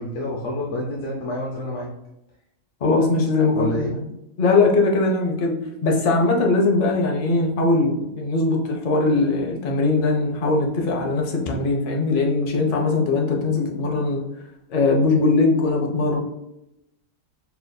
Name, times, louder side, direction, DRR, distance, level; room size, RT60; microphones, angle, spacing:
voice 1, 0.0-1.9 3.5-3.9, left 1 dB, 80° left, -4 dB, 1.3 m, -28 dB
voice 2, 2.8-4.1 4.4-5.6 5.8-14.2 14.7-16.2, left 3 dB, 45° left, 1 dB, 0.7 m, -20 dB
6.8 x 2.5 x 2.2 m, 0.85 s
omnidirectional pair, 1.8 m